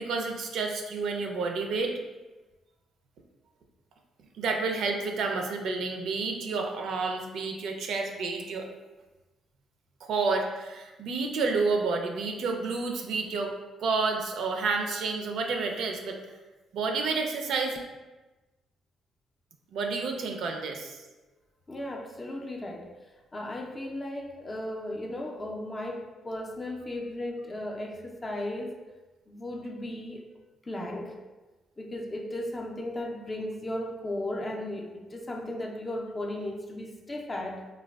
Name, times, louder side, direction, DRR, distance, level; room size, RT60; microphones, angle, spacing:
voice 1, 0.0-1.9 4.4-8.7 10.0-13.5 13.8-16.2 16.7-17.8 19.7-21.0, right 4 dB, 75° right, 3 dB, 0.4 m, -30 dB
voice 2, 21.7-22.9 23.3-28.7 29.3-30.2 30.6-31.2 31.8-37.7, left 1 dB, 25° left, 1 dB, 0.4 m, -36 dB
3.3 x 2.2 x 2.2 m, 1.1 s
cardioid pair, 90°, 0 cm